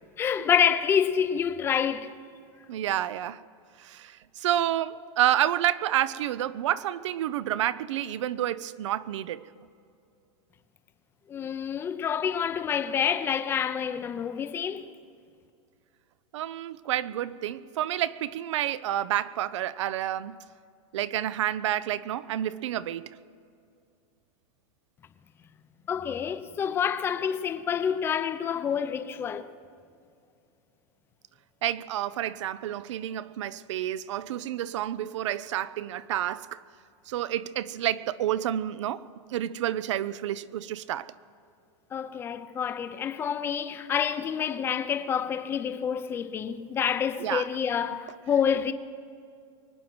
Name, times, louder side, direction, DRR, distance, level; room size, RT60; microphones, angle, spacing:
voice 1, 0.2-2.2 11.3-14.8 25.9-29.5 41.9-48.7, left 8 dB, 15° left, 0.5 m, -28 dB
voice 2, 2.7-3.4 3.8-9.5 16.3-20.4 20.9-23.1 31.6-36.6 37.1-39.0 39.3-41.1 47.2-47.5, right 12 dB, 85° right, 0.6 m, -29 dB
23.0 x 9.6 x 6.1 m
supercardioid pair, 165°, 15 cm